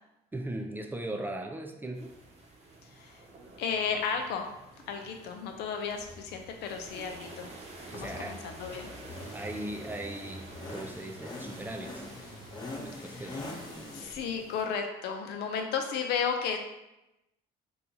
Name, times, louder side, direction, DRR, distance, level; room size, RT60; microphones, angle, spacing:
voice 1, 0.3-2.1 7.9-8.4 9.3-12.1 12.8-13.4, right 1 dB, 10° right, 2 dB, 0.3 m, -38 dB
sound 1, 1.9-14.6, right 2 dB, 40° right, 0.8 m, -49 dB
voice 2, 2.8-3.2 3.6-4.5 4.9-7.5 7.9-8.9 12.9-13.5 13.9-16.6, left 6 dB, 85° left, 4 dB, 0.5 m, -34 dB
sound 2, 5.9-14.0, left 2 dB, 25° left, 0.7 m, -44 dB
2.9 x 2.3 x 3.9 m, 0.92 s
cardioid pair, 110°, 17 cm